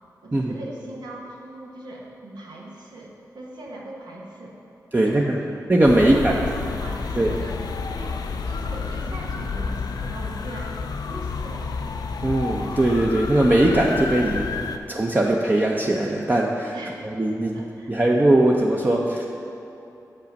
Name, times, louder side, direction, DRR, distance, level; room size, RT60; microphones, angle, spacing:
voice 1, 0.2-4.6 4.9-5.5 6.0-7.6 7.9-8.2 8.4-11.7 16.7-17.1 17.5-17.9, right 1 dB, 85° right, -2 dB, 1.1 m, -39 dB
voice 2, 4.9-5.4 5.7-6.4 7.2-7.3 12.2-14.5 14.9-16.7 17.2-17.6 17.9-19.3, right 1 dB, 25° right, -2 dB, 0.6 m, -20 dB
sound 1, 5.8-14.8, left 4 dB, 75° left, 0.4 m, -30 dB
7.2 x 5.4 x 5.2 m, 2.8 s
cardioid pair, 45°, 7 cm